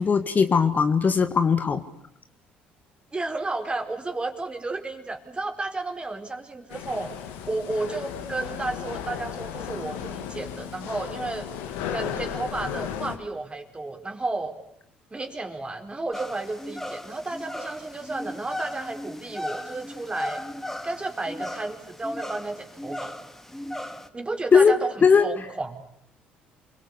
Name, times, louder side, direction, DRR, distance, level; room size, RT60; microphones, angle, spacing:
voice 1, 0.0-1.8 24.5-24.7 25.0-25.3, left 6 dB, 40° left, 9 dB, 1.9 m, -19 dB
voice 2, 3.1-7.1 7.5-11.5 11.9-14.5 15.1-20.4 20.8-23.1 24.1-25.8, right 2 dB, 25° right, 6 dB, 4.6 m, -32 dB
sound 1, 6.7-13.2, left 9 dB, 75° left, 2.8 m, -35 dB
sound 2, 16.1-24.1, left 1 dB, 5° left, 2.3 m, -36 dB
29.0 x 23.5 x 8.4 m, 0.71 s
hypercardioid pair, 55°, 5 cm